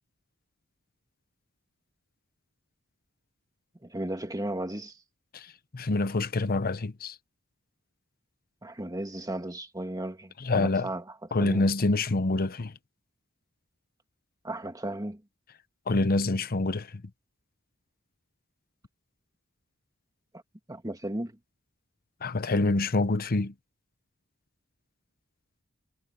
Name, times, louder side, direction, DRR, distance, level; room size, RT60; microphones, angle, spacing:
voice 1, 3.8-5.0 8.6-11.1 11.4-11.7 14.4-15.2 20.7-21.4, right 1 dB, 15° right, 2.0 m, -35 dB
voice 2, 5.7-7.2 10.4-10.9 11.3-12.7 15.9-17.0 22.2-23.5, left 2 dB, 45° left, 0.8 m, -26 dB
head